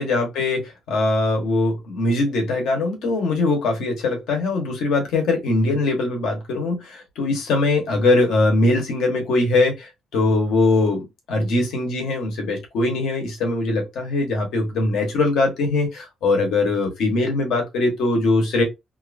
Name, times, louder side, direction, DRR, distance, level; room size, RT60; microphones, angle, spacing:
voice 1, 0.0-18.6, left 2 dB, 80° left, 1.1 m, -21 dB
2.7 x 2.4 x 2.5 m
cardioid pair, 180°, 0 cm